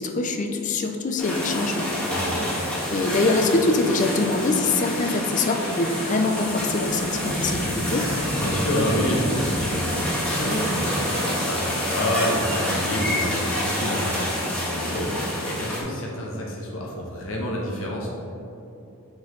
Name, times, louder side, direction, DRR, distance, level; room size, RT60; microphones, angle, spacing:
voice 1, 0.0-1.9 2.9-8.1, left 3 dB, 35° left, 5 dB, 0.5 m, -24 dB
sound 1, 1.2-15.8, equal, 5° left, 1.4 m, -27 dB
voice 2, 2.0-2.5 8.4-18.1, equal, 70° left, -3 dB, 1.0 m, -28 dB
6.2 x 5.5 x 3.8 m, 2.7 s
head